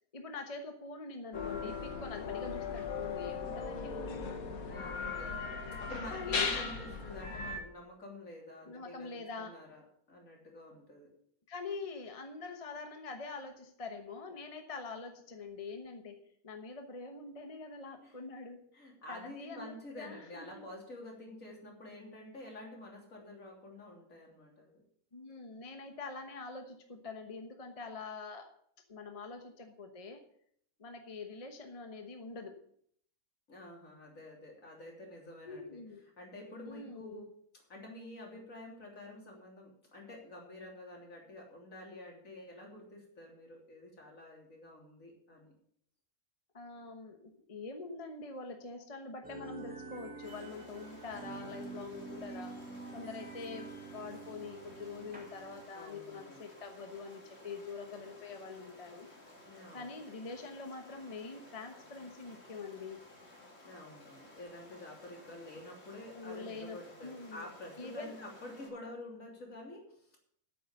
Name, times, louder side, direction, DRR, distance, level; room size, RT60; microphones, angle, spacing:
voice 1, 0.1-4.4 6.1-6.6 8.7-9.5 11.5-18.7 19.1-20.7 25.1-28.5 28.9-30.2 30.8-32.6 35.4-36.0 36.6-37.2 46.5-52.6 52.9-59.1 59.7-63.0 66.1-67.5 67.8-68.2, left 4 dB, 25° left, 5 dB, 1.1 m, -45 dB
sound 1, 1.3-7.6, left 5 dB, 85° left, 1.9 m, -38 dB
voice 2, 4.6-5.5 5.8-11.1 18.0-18.2 18.7-24.8 33.5-35.8 36.2-37.2 37.7-45.5 55.7-56.4 59.5-60.0 63.6-70.2, left 1 dB, 70° left, -1 dB, 3.7 m, -49 dB
sound 2, 49.2-55.6, right 3 dB, 5° right, 2.0 m, -47 dB
Stream, 50.2-68.7, left 1 dB, 50° left, 2.9 m, -56 dB
9.3 x 7.9 x 8.1 m, 0.66 s
omnidirectional pair, 1.5 m